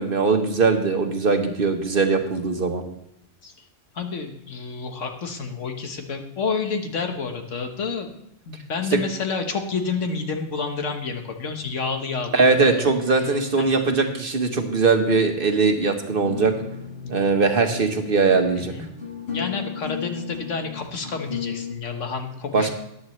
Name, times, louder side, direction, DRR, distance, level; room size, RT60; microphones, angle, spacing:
voice 1, 0.0-2.8 8.9-9.0 12.3-16.5 17.1-18.7 22.5-22.7, right 4 dB, 50° right, 5 dB, 1.3 m, -20 dB
voice 2, 4.0-8.1 8.5-12.8 13.6-13.8 17.0-17.1 18.5-18.9 19.3-22.7, left 4 dB, 85° left, 5 dB, 1.6 m, -29 dB
sound 1, 16.2-21.7, left 7 dB, 60° left, 1.8 m, -35 dB
14.0 x 10.0 x 3.2 m, 0.81 s
omnidirectional pair, 1.2 m